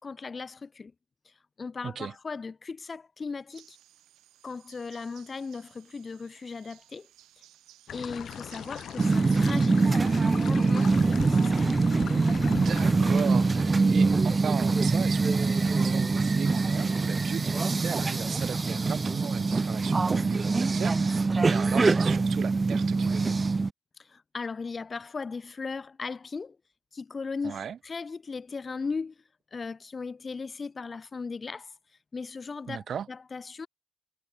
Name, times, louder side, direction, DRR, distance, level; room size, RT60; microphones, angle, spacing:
voice 1, 0.0-0.9 1.6-3.8 4.4-7.1 7.9-10.0 10.3-11.8 24.0-26.6 26.9-29.1 29.5-31.7 32.1-33.7, left 4 dB, 35° left, 1.9 m, -37 dB
voice 2, 1.8-2.1 12.5-23.4 27.4-27.8 32.7-33.1, right 8 dB, 55° right, 1.5 m, -37 dB
sound 1, 3.5-11.5, right 14 dB, 85° right, 5.6 m, -57 dB
sound 2, 7.9-13.9, left 9 dB, 65° left, 3.2 m, -40 dB
sound 3, 9.0-23.7, right 3 dB, 25° right, 0.7 m, -24 dB
cardioid pair, 90°, 0 cm